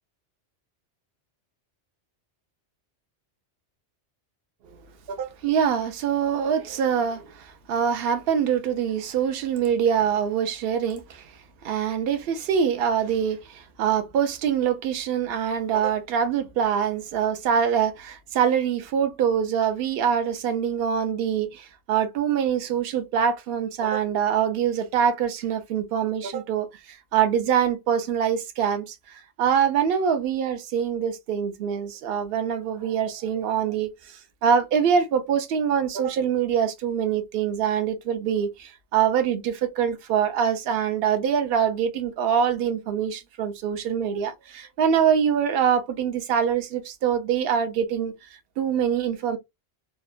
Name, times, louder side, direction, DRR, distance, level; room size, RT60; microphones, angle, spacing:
voice 1, 5.1-48.3 48.6-49.4, right 8 dB, 60° right, 0.8 m, -24 dB
2.8 x 2.2 x 2.4 m
omnidirectional pair, 1.2 m